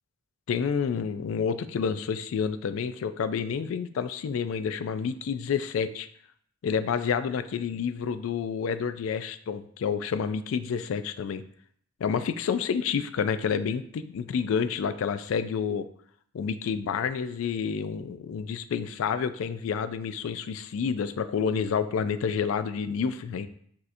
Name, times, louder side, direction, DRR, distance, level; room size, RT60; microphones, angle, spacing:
voice 1, 0.5-6.1 6.6-11.4 12.0-15.8 16.3-23.5, left 6 dB, 75° left, 13 dB, 0.3 m, -29 dB
6.1 x 2.8 x 2.6 m, 0.62 s
head